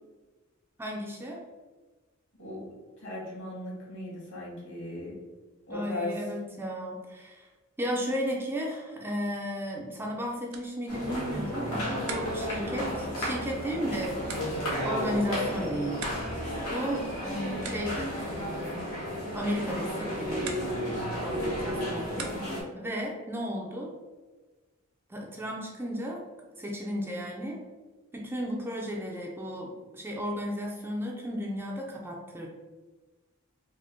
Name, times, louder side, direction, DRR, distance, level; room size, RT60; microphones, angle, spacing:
voice 1, 0.8-1.4 5.7-7.5 7.8-18.2 19.3-20.6 21.0-22.3 22.7-24.0 25.1-26.2 26.6-27.6 28.1-32.5, equal, 10° right, -1 dB, 0.4 m, -34 dB
voice 2, 3.0-5.1 5.7-6.2, left 1 dB, 60° left, -5 dB, 1.5 m, -37 dB
sound 1, 10.4-22.8, right 5 dB, 80° right, 0.5 m, -48 dB
sound 2, 10.9-22.6, equal, 85° left, 1.3 m, -33 dB
3.5 x 2.1 x 3.6 m, 1.3 s
head